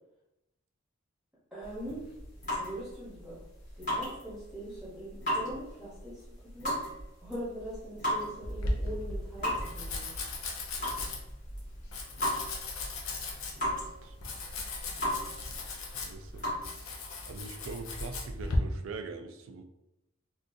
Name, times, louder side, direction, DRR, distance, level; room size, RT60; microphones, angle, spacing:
voice 1, 1.5-2.1 2.6-3.4 3.8-6.8 7.2-10.1, right 1 dB, ahead, -10 dB, 0.8 m, -42 dB
sound 1, 1.6-16.5, equal, 40° left, 1.5 m, -37 dB
Domestic sounds home sounds, 8.4-18.6, left 2 dB, 85° left, 0.6 m, -38 dB
voice 2, 15.2-17.0 17.3-19.6, right 4 dB, 70° right, 6 dB, 0.4 m, -44 dB
3.8 x 2.4 x 2.5 m, 0.87 s
head